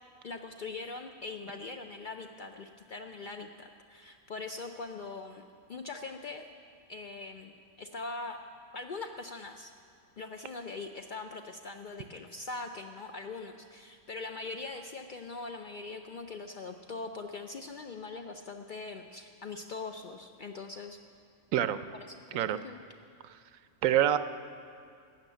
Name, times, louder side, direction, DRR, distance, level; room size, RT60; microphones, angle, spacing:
voice 1, 0.2-5.4 5.7-6.4 6.9-7.5 7.8-8.4 8.7-9.7 10.2-21.0 22.3-22.8, left 3 dB, 60° left, 5 dB, 0.5 m, -42 dB
voice 2, 23.8-24.2, right 11 dB, 85° right, 12 dB, 1.0 m, -26 dB
14.5 x 6.0 x 9.0 m, 2.3 s
omnidirectional pair, 1.4 m